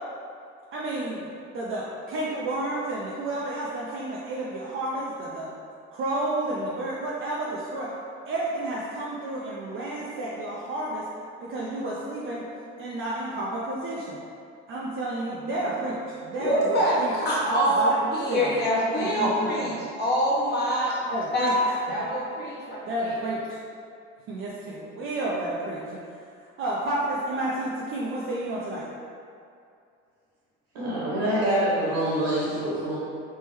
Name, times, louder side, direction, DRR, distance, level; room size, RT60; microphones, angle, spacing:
voice 1, 0.7-1.3 1.5-5.5 5.9-7.9 8.3-11.1 11.4-12.5 12.8-14.2 14.7-17.1 17.4-18.5 19.0-19.7 21.1-21.5 22.8-23.4 24.3-26.0 26.6-28.8, right 1 dB, 45° right, -6 dB, 0.5 m, -31 dB
voice 2, 16.4-21.0 21.3-22.8 23.0-23.1, equal, 35° left, -7 dB, 1.1 m, -25 dB
voice 3, 30.7-33.0, right 1 dB, 75° right, -7 dB, 1.3 m, -25 dB
3.6 x 2.1 x 3.0 m, 2.4 s
supercardioid pair, 80°, 29 cm